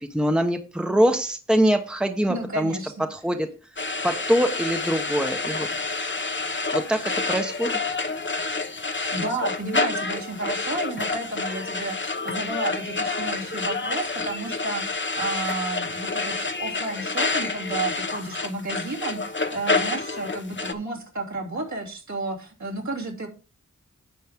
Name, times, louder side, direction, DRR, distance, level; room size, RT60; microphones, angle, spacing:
voice 1, 0.1-2.8 3.1-3.5 4.0-5.7 6.7-7.7, equal, 5° right, 5 dB, 1.2 m, -23 dB
voice 2, 2.3-3.0 9.1-23.3, right 2 dB, 60° right, -3 dB, 3.2 m, -32 dB
sound 1, 3.8-20.7, left 3 dB, 35° left, 1.0 m, -28 dB
10.5 x 7.2 x 3.7 m, 0.35 s
wide cardioid pair, 45°, 32 cm